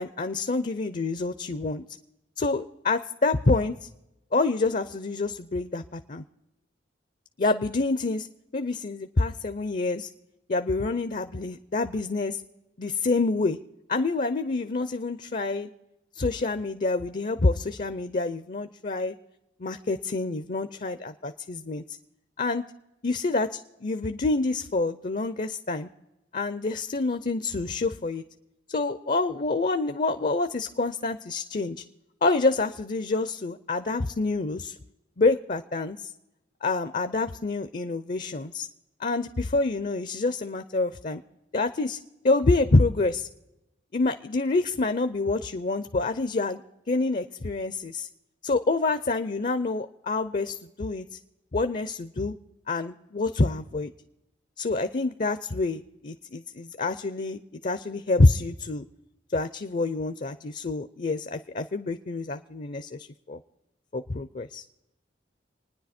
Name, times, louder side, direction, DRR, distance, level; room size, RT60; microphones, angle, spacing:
voice 1, 0.0-1.8 2.4-3.7 4.3-6.2 7.4-8.3 8.5-10.1 10.5-12.4 12.8-13.6 13.9-15.7 16.2-19.1 19.6-21.8 22.4-22.6 23.0-25.9 26.3-28.2 28.7-31.8 32.2-34.7 35.2-36.0 36.6-38.7 39.0-41.2 41.5-42.0 42.2-43.3 43.9-46.6 46.9-48.1 48.4-51.1 51.5-52.3 52.7-53.9 54.6-58.8 59.3-63.0 63.3-63.4 63.9-64.6, left 3 dB, 45° left, 10 dB, 0.5 m, -27 dB
26.5 x 10.0 x 4.3 m, 0.96 s
head